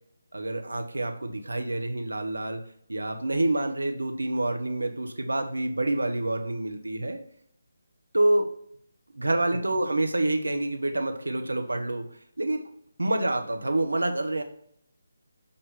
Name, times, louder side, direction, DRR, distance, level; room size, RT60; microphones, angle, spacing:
voice 1, 0.3-2.6 2.9-7.2 8.1-8.5 9.2-12.1 12.4-12.6 13.0-14.4, right 2 dB, 75° right, 5 dB, 0.9 m, -27 dB
6.8 x 2.8 x 5.3 m, 0.67 s
figure-of-eight pair, 150°, 0 cm